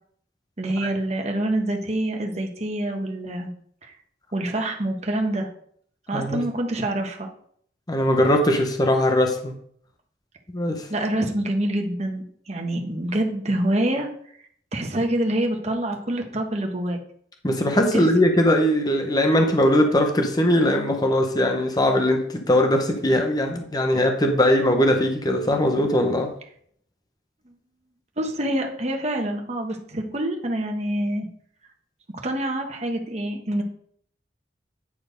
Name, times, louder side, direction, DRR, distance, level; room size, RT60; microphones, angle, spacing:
voice 1, 0.6-3.5 3.8-3.9 4.3-5.5 6.1-7.3 10.9-14.1 14.7-17.0 17.9-18.1 28.2-31.3 32.2-33.6, right 1 dB, 40° right, 2 dB, 1.3 m, -26 dB
voice 2, 7.9-9.5 10.5-10.9 17.4-26.3, left 1 dB, 25° left, 4 dB, 1.0 m, -20 dB
9.7 x 4.4 x 5.2 m, 0.62 s
head